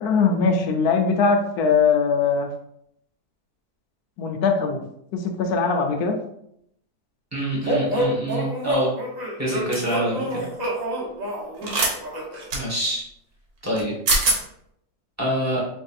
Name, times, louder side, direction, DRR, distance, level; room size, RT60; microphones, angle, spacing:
voice 1, 0.0-2.5 4.2-4.8 5.1-6.1 11.6-11.7, left 5 dB, 75° left, 4 dB, 1.1 m, -21 dB
voice 2, 7.3-8.9 9.4-10.4 12.5-13.0 13.6-13.9 15.2-15.6, right 1 dB, 10° right, -5 dB, 1.1 m, -26 dB
sound 1, 7.6-12.5, equal, 40° right, 0.6 m, -27 dB
sound 2, 9.7-9.9 11.6-11.9 12.5-12.6 13.8-13.9 14.1-14.4, right 2 dB, 70° right, 1.4 m, -22 dB
5.3 x 2.6 x 2.4 m, 0.74 s
omnidirectional pair, 1.7 m